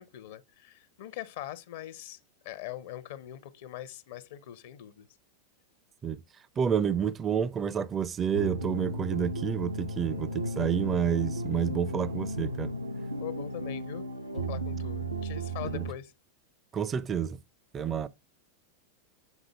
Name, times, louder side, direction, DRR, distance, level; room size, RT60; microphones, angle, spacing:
voice 1, 0.0-2.2 2.4-5.1 13.2-16.1, left 12 dB, 55° left, 0.6 m, -42 dB
voice 2, 6.6-12.7 15.7-15.8 16.7-17.4 17.7-18.1, right 8 dB, 25° right, 0.4 m, -29 dB
sound 1, 8.3-15.9, right 1 dB, 85° right, 0.6 m, -34 dB
8.1 x 3.7 x 3.3 m
figure-of-eight pair, 90°, 0 cm